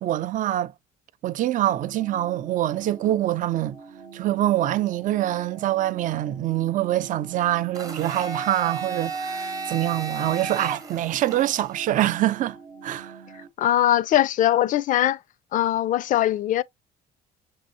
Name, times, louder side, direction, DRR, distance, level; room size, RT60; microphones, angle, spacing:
voice 1, 0.0-0.7 1.2-3.8 4.1-12.6 12.8-13.2, right 14 dB, 50° right, 0.4 m, -25 dB
sound 1, 1.6-13.5, right 5 dB, 85° right, 0.9 m, -44 dB
Domestic sounds home sounds, 7.7-11.8, right 4 dB, 20° right, 0.7 m, -33 dB
voice 2, 13.6-15.2 15.5-16.6, left 12 dB, 50° left, 0.4 m, -21 dB
6.2 x 2.7 x 2.7 m
cardioid pair, 110°, 17 cm